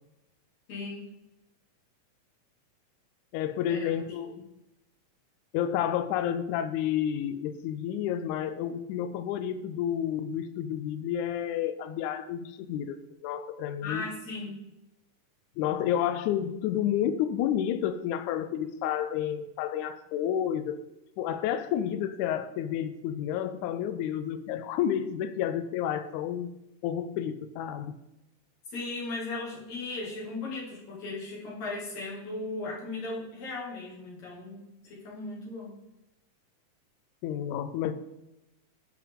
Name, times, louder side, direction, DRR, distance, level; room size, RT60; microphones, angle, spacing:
voice 1, 0.7-1.1 3.7-4.0 13.8-14.6 28.7-35.8, left 3 dB, 55° left, -5 dB, 3.2 m, -37 dB
voice 2, 3.3-4.3 5.5-14.0 15.6-20.8 21.2-26.5 26.8-27.9 37.2-37.9, left 10 dB, 80° left, 10 dB, 1.7 m, -30 dB
10.5 x 4.8 x 3.5 m, 0.92 s
omnidirectional pair, 3.8 m